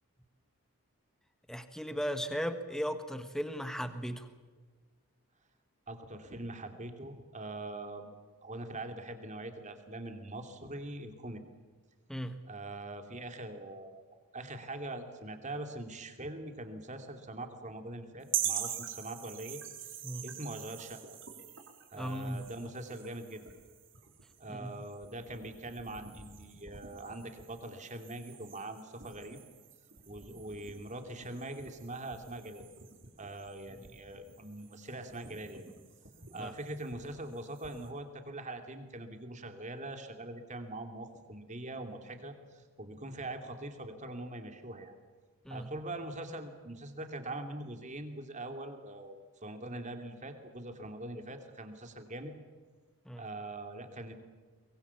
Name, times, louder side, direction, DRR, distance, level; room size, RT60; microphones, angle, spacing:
voice 1, 1.5-4.3 12.1-12.4 20.0-20.3 22.0-22.4 24.5-24.7 36.3-36.5 45.4-45.7 53.0-53.2, equal, ahead, 9 dB, 1.5 m, -37 dB
voice 2, 5.9-8.1 8.4-11.4 12.5-14.1 14.3-21.2 21.9-23.4 24.4-29.4 30.1-32.7 33.2-35.7 36.3-44.9 45.5-52.3 53.2-54.1, right 2 dB, 35° right, 6 dB, 2.7 m, -43 dB
sound 1, 18.3-37.9, right 9 dB, 55° right, 4.1 m, -44 dB
23.5 x 22.0 x 7.3 m, 1.5 s
head